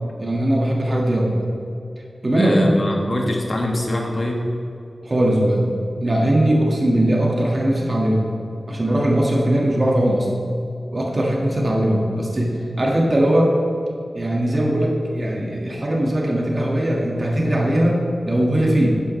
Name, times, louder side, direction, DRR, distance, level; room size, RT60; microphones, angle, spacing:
voice 1, 0.2-1.4 2.2-2.7 5.0-5.7 6.0-8.3 8.7-10.3 10.9-13.5 14.1-18.9, right 1 dB, 40° right, -2 dB, 1.7 m, -19 dB
voice 2, 2.4-4.4, left 1 dB, 50° left, 0 dB, 1.7 m, -24 dB
13.5 x 9.9 x 3.2 m, 2.7 s
wide cardioid pair, 90°, 0 cm